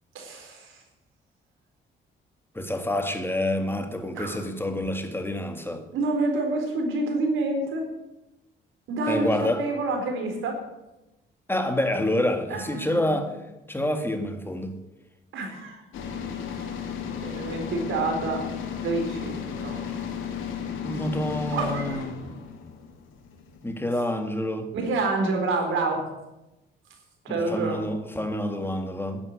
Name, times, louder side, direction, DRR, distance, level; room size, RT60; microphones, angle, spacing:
voice 1, 0.1-0.8 4.1-4.4 5.9-7.8 8.9-10.6 12.5-13.1 15.3-15.8 16.5-16.7 17.0-18.4 18.8-19.8 21.5-22.0 23.9-24.0 24.7-26.0 27.2-27.8, right 3 dB, 85° right, 4.1 m, -28 dB
voice 2, 2.6-5.8 9.1-9.6 11.5-13.4 13.7-14.7 20.8-22.2 23.6-24.7 27.3-29.2, left 1 dB, 10° left, 1.9 m, -27 dB
sound 1, 15.9-23.9, left 7 dB, 85° left, 2.4 m, -34 dB
10.5 x 9.8 x 9.5 m
cardioid pair, 90°, 20 cm